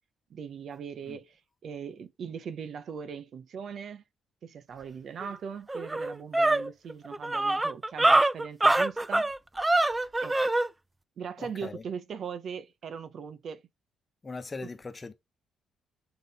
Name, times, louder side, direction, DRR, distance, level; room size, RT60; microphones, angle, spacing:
voice 1, 0.3-4.0 4.4-9.3 10.2-10.4 11.2-13.6 14.6-14.7, right 6 dB, 60° right, 0.8 m, -40 dB
sound 1, 5.2-5.3 5.7-10.7, right 2 dB, 15° right, 0.4 m, -24 dB
voice 2, 11.4-11.8 14.2-15.1, left 3 dB, 30° left, 1.1 m, -40 dB
6.8 x 3.8 x 4.1 m
cardioid pair, 90°, 0 cm